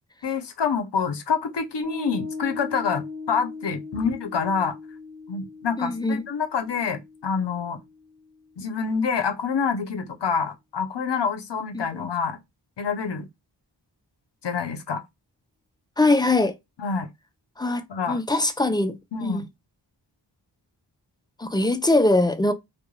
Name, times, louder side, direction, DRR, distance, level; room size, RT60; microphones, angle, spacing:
voice 1, 0.2-4.8 5.3-7.8 8.6-12.4 12.8-13.3 14.4-15.0 16.8-17.1 17.9-18.2 19.1-19.5, left 6 dB, 70° left, 0.6 m, -27 dB
Piano, 1.8-8.6, left 4 dB, 35° right, 1.4 m, -39 dB
voice 2, 5.8-6.2 11.7-12.1 16.0-16.6 17.6-19.0 19.2-19.4 21.4-22.5, left 2 dB, 10° left, 0.3 m, -22 dB
2.3 x 2.2 x 3.0 m
wide cardioid pair, 45°, 44 cm